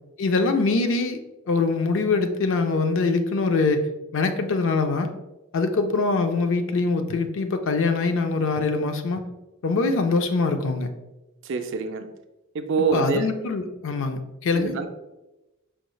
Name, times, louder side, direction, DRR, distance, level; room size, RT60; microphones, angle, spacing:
voice 1, 0.2-1.2 1.5-3.9 4.1-5.1 5.5-9.2 9.6-10.9 12.9-14.7, left 3 dB, 60° left, 7 dB, 0.4 m, -23 dB
voice 2, 11.4-12.1 12.5-13.3 14.5-14.9, right 5 dB, 60° right, 7 dB, 0.4 m, -25 dB
5.7 x 3.1 x 2.3 m, 1.0 s
head